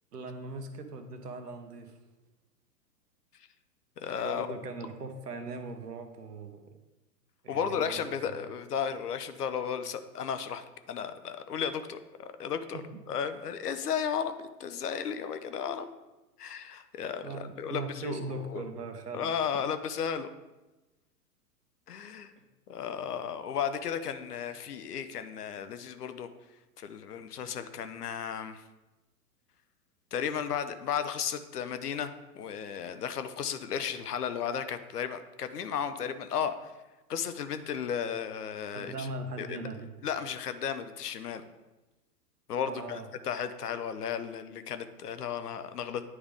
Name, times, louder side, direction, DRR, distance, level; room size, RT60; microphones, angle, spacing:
voice 1, 0.1-2.0 4.1-6.8 7.4-8.4 12.7-13.0 17.2-19.3 38.7-39.9 42.6-43.1, right 3 dB, 80° right, 7 dB, 1.0 m, -40 dB
voice 2, 4.0-4.6 7.5-12.8 13.1-15.9 16.4-18.6 19.1-20.3 21.9-22.3 22.7-26.3 26.8-28.6 30.1-36.7 37.1-39.1 39.4-39.7 40.0-41.4 42.5-46.0, left 7 dB, 75° left, 10 dB, 0.7 m, -34 dB
9.5 x 3.5 x 3.5 m, 1.1 s
figure-of-eight pair, 110°, 47 cm